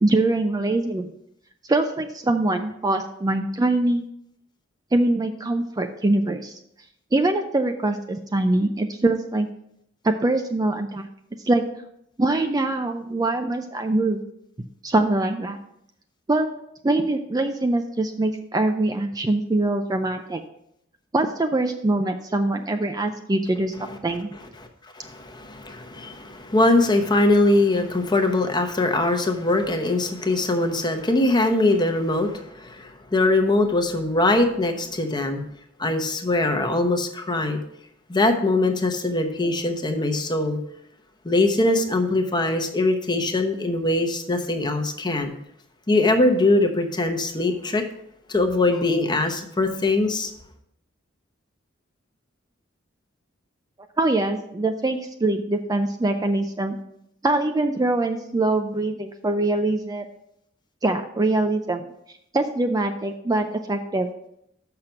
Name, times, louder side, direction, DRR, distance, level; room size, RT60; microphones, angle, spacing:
voice 1, 0.0-1.1 1.7-4.0 4.9-6.6 7.1-9.5 10.0-11.1 11.4-11.6 12.2-14.2 14.8-15.6 16.3-16.5 16.8-20.4 21.1-24.3 54.0-56.8 57.2-60.0 60.8-61.9 62.3-64.1, right 2 dB, 20° right, 6 dB, 0.4 m, -23 dB
voice 2, 24.9-35.4 35.8-37.6 38.1-40.6 41.2-45.3 45.9-47.8 48.3-50.3, left 2 dB, 20° left, 5 dB, 0.9 m, -22 dB
6.5 x 5.8 x 5.8 m, 0.74 s
head